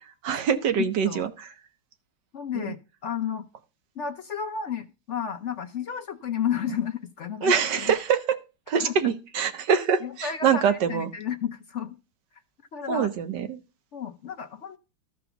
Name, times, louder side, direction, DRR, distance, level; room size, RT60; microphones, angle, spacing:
voice 1, 0.2-1.5 2.6-2.7 7.4-8.2 8.7-11.1 12.9-13.6, right 7 dB, 80° right, 9 dB, 1.7 m, -24 dB
voice 2, 0.8-1.2 2.3-2.8 3.0-3.5 4.0-7.9 8.8-9.1 10.0-11.9 12.7-13.1 13.9-14.8, left 8 dB, 55° left, 8 dB, 0.8 m, -32 dB
13.0 x 4.9 x 7.0 m, 0.31 s
omnidirectional pair, 1.8 m